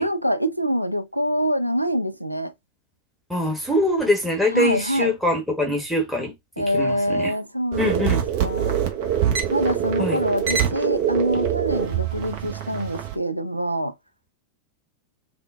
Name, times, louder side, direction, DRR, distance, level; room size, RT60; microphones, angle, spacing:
voice 1, 0.0-2.5 4.5-5.1 6.6-8.8 9.5-13.9, equal, 90° right, 0.3 m, -25 dB
voice 2, 3.3-6.3 6.7-7.3 7.8-8.2 10.0-10.2, left 1 dB, ahead, 1.0 m, -23 dB
sound 1, 7.7-13.1, right 9 dB, 50° right, 0.8 m, -24 dB
3.6 x 2.2 x 2.3 m
figure-of-eight pair, 90°, 0 cm